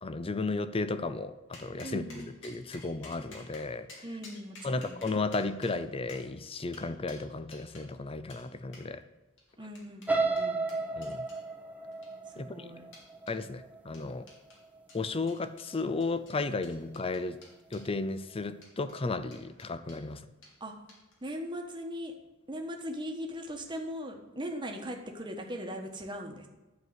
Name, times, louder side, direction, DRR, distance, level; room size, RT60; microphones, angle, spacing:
voice 1, 0.0-4.1 4.6-9.0 11.0-11.3 12.4-12.7 13.3-14.3 14.9-17.4 17.7-20.3, left 3 dB, 25° left, 12 dB, 0.6 m, -34 dB
sound 1, 1.5-7.9 8.3-8.4 8.7-8.9 9.4-11.4 11.9-12.4 12.9-13.4 13.9-14.6 14.9-17.9 18.5-19.0 19.3-20.0 20.4-20.6 20.9-21.2, left 2 dB, 65° left, 2.8 m, -53 dB
voice 2, 1.8-2.3 4.0-4.9 9.6-10.6 12.3-12.8 20.6-20.7 21.2-22.1 22.5-26.5, equal, 25° right, 2 dB, 1.3 m, -39 dB
sound 2, 10.1-14.0 14.5-14.8 15.2-15.3, right 3 dB, 5° right, 0.9 m, -33 dB
11.5 x 4.7 x 8.1 m, 1.1 s
head